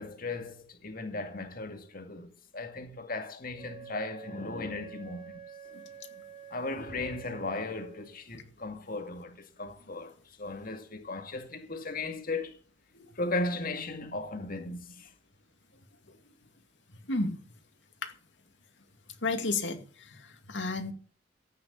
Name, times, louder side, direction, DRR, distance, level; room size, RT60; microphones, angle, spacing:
voice 1, 0.0-5.4 6.5-10.1 10.4-12.6 13.2-15.1, left 2 dB, 50° left, 2.0 m, -36 dB
Wind instrument woodwind instrument, 3.5-8.2, right 8 dB, 30° right, 2.5 m, -48 dB
voice 2, 19.2-20.9, left 3 dB, 70° left, 2.3 m, -33 dB
14.0 x 9.6 x 7.0 m
head